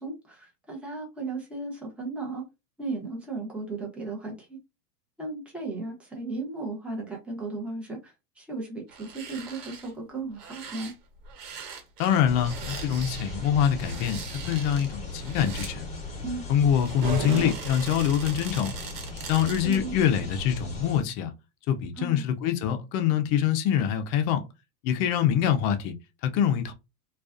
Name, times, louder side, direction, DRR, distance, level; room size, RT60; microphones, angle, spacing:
voice 1, 0.0-2.4 2.8-4.6 5.2-10.9 16.2-16.5 19.6-19.9 22.0-22.2, right 3 dB, 5° right, 0.8 m, -35 dB
sound 1, 8.9-9.9 10.3-15.7 16.5-19.9 20.3-20.4, right 6 dB, 75° right, 1.1 m, -42 dB
voice 2, 12.0-15.9 16.5-18.7 19.3-21.3 21.7-24.4 24.8-25.9 26.2-26.7, left 9 dB, 35° left, 0.5 m, -25 dB
sound 2, 12.3-21.0, left 3 dB, 15° left, 1.1 m, -38 dB
sound 3, 17.0-18.5, right 3 dB, 55° right, 1.0 m, -33 dB
2.3 x 2.3 x 2.4 m
hypercardioid pair, 115°, 48 cm